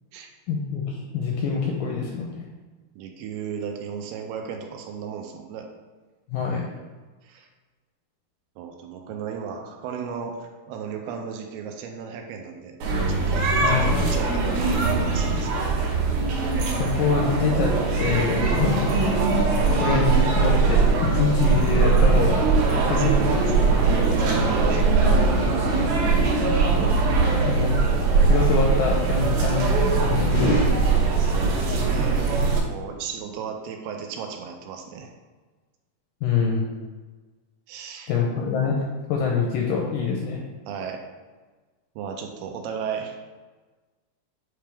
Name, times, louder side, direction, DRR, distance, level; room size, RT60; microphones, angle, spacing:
voice 1, 0.5-2.5 6.3-6.7 13.6-14.1 16.7-19.2 19.7-23.2 26.7-27.0 27.2-27.8 28.2-31.1 36.2-36.6 38.1-40.4, left 5 dB, 85° left, -1 dB, 2.0 m, -25 dB
voice 2, 3.0-5.7 7.2-7.5 8.6-12.8 13.1-15.8 20.0-20.1 22.7-25.0 31.2-32.3 32.7-35.1 37.7-38.1 40.7-41.0 42.0-43.2, right 6 dB, 90° right, 3 dB, 2.7 m, -35 dB
sound 1, 12.8-32.6, right 4 dB, 70° right, 2.6 m, -21 dB
sound 2, 23.8-31.4, right 3 dB, 35° left, 0.8 m, -35 dB
sound 3, 30.3-31.5, left 1 dB, 65° left, 1.3 m, -26 dB
8.4 x 3.4 x 3.4 m, 1.3 s
omnidirectional pair, 4.5 m